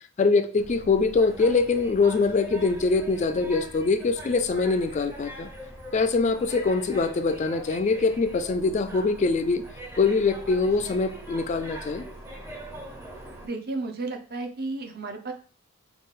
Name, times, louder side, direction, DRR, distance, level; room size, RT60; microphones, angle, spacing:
voice 1, 0.2-5.5 5.9-9.6 10.0-12.0, left 4 dB, 35° left, 9 dB, 0.3 m, -23 dB
sound 1, 0.6-13.5, right 1 dB, 10° right, 0.6 m, -42 dB
voice 2, 13.4-15.3, right 3 dB, 50° right, 5 dB, 0.7 m, -33 dB
5.3 x 2.4 x 3.6 m, 0.42 s
head